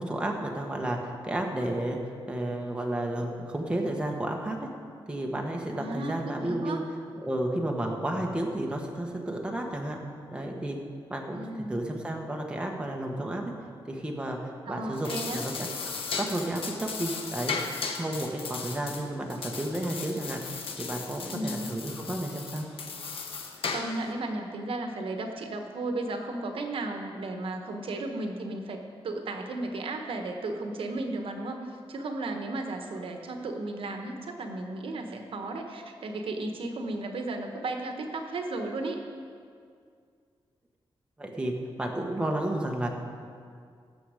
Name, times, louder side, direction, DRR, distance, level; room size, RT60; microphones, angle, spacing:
voice 1, 0.0-2.0 2.3-4.7 5.1-6.8 7.2-10.0 10.3-10.8 11.1-11.4 11.7-13.5 13.9-17.6 17.9-20.4 20.8-22.7 41.2-42.9, right 1 dB, 10° right, 0 dB, 1.3 m, -32 dB
voice 2, 5.8-6.8 11.3-11.8 14.7-15.4 21.3-21.7 23.7-39.0, right 2 dB, 75° right, 4 dB, 1.1 m, -34 dB
sound 1, 14.8-24.1, left 5 dB, 80° left, 1.1 m, -36 dB
18.0 x 7.0 x 5.0 m, 2.2 s
wide cardioid pair, 140°, 9 cm